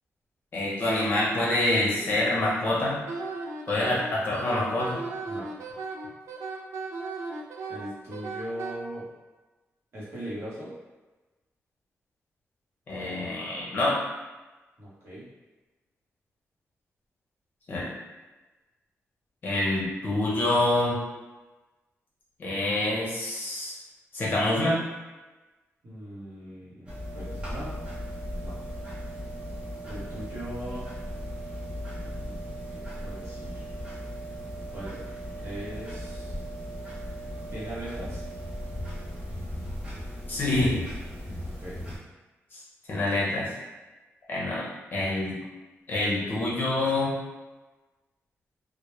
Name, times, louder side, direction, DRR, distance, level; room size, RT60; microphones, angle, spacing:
voice 1, 0.5-3.0 3.7-5.0 12.9-14.0 17.7-17.9 19.4-21.0 22.4-23.7 24.1-24.8 40.3-40.7 42.5-42.6 42.9-43.5 44.3-44.7 44.9-45.4 45.9-47.2, left 2 dB, 45° left, -6 dB, 0.7 m, -26 dB
Wind instrument woodwind instrument, 3.1-8.7, right 4 dB, 70° right, 0.3 m, -36 dB
voice 2, 7.7-9.1 9.9-10.7 14.8-15.3 25.8-27.8 28.4-28.5 29.9-30.9 32.0-32.4 32.7-33.7 34.7-35.0 35.4-36.4 37.5-38.2 41.4-41.8, right 1 dB, 55° right, -8 dB, 0.9 m, -40 dB
sound 1, 26.9-42.0, equal, 20° right, 0.6 m, -37 dB
2.1 x 2.1 x 2.9 m, 1.2 s
wide cardioid pair, 170°, 5 cm